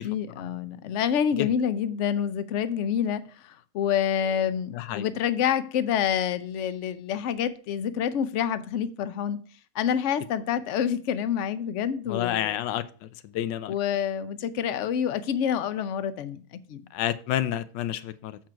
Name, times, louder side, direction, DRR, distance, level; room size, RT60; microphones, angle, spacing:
voice 1, 0.0-9.4 9.7-12.6 13.7-16.8, left 8 dB, 65° left, 0.7 m, -27 dB
voice 2, 4.7-5.0 12.1-13.7 16.9-18.4, left 12 dB, 90° left, 1.3 m, -29 dB
7.5 x 4.6 x 5.7 m
omnidirectional pair, 1.9 m